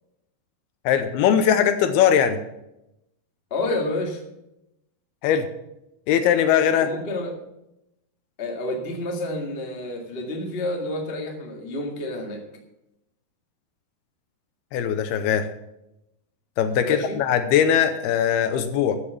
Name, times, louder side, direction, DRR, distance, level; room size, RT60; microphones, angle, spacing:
voice 1, 0.9-2.4 5.2-5.5 6.1-6.9 14.7-15.5 16.6-19.0, left 8 dB, 80° left, 9 dB, 2.6 m, -20 dB
voice 2, 3.5-4.2 6.8-7.4 8.4-12.4 16.8-17.2, left 2 dB, 30° left, 1 dB, 1.0 m, -29 dB
13.5 x 6.9 x 7.2 m, 0.87 s
omnidirectional pair, 4.8 m